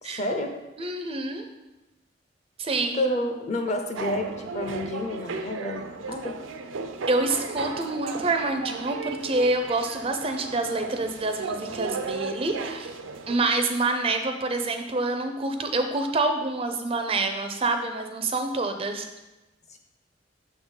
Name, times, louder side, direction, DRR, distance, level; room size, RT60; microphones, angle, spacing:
voice 1, 0.0-0.9 2.9-6.4 19.7-19.8, left 1 dB, 35° left, 5 dB, 0.6 m, -30 dB
voice 2, 0.8-1.5 2.6-3.0 7.1-12.9 13.3-19.1, right 2 dB, 30° right, 6 dB, 0.4 m, -27 dB
sound 1, 4.0-13.4, right 4 dB, 80° right, 0.5 m, -35 dB
6.6 x 3.6 x 5.4 m, 1.0 s
head